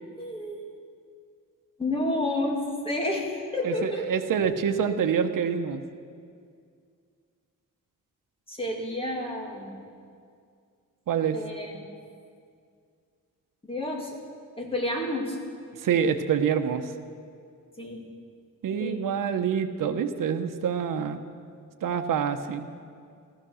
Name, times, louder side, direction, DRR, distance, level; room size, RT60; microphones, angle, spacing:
voice 1, 0.2-0.6 1.8-4.1 8.5-9.8 11.3-11.8 13.7-14.2 14.6-15.4 17.8-18.0 18.8-19.0, left 1 dB, 15° left, -1 dB, 2.2 m, -30 dB
voice 2, 3.6-5.8 11.1-11.4 15.8-16.9 18.6-21.2 21.8-22.7, right 7 dB, 80° right, 8 dB, 0.9 m, -26 dB
15.5 x 14.5 x 6.3 m, 2.2 s
wide cardioid pair, 175°, 32 cm